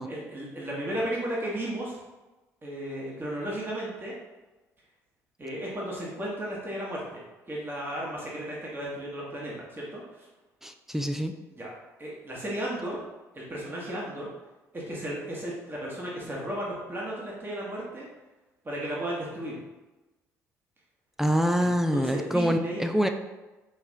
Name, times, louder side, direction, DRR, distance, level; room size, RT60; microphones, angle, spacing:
voice 1, 0.0-2.0 2.6-4.1 5.4-7.2 7.5-10.3 11.6-11.7 12.0-13.0 13.3-14.3 14.7-18.1 18.6-19.6 21.6-22.9, right 1 dB, 25° right, -5 dB, 1.3 m, -34 dB
voice 2, 10.6-11.4 21.2-23.1, equal, 5° right, 6 dB, 0.4 m, -25 dB
4.7 x 3.0 x 3.6 m, 1.1 s
hypercardioid pair, 55°, 8 cm